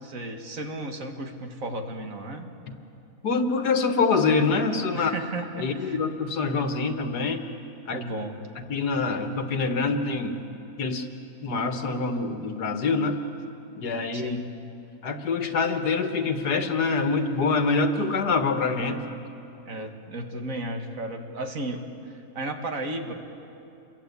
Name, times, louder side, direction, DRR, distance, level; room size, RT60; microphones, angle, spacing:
voice 1, 0.0-2.5 4.9-6.0 7.9-8.4 14.1-14.4 19.7-21.8 22.4-23.1, right 1 dB, 60° right, 4 dB, 2.1 m, -34 dB
voice 2, 3.2-5.1 5.6-7.4 7.9-8.0 8.7-10.4 10.8-11.1 11.4-13.2 13.8-14.3 15.0-19.0, left 4 dB, 85° left, 6 dB, 2.0 m, -25 dB
28.0 x 22.5 x 8.4 m, 2.8 s
omnidirectional pair, 1.7 m